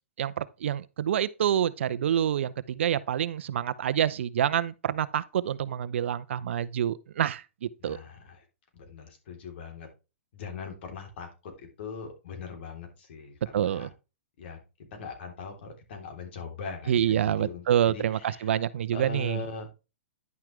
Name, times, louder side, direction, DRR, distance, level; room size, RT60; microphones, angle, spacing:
voice 1, 0.2-8.0 13.5-13.9 16.9-19.4, right 10 dB, 70° right, 0.7 m, -27 dB
voice 2, 7.8-8.4 8.7-9.9 10.3-13.9 14.4-14.6 14.9-18.6 18.9-19.7, left 5 dB, 60° left, 3.4 m, -41 dB
10.5 x 5.8 x 3.3 m
hypercardioid pair, 135°, 7 cm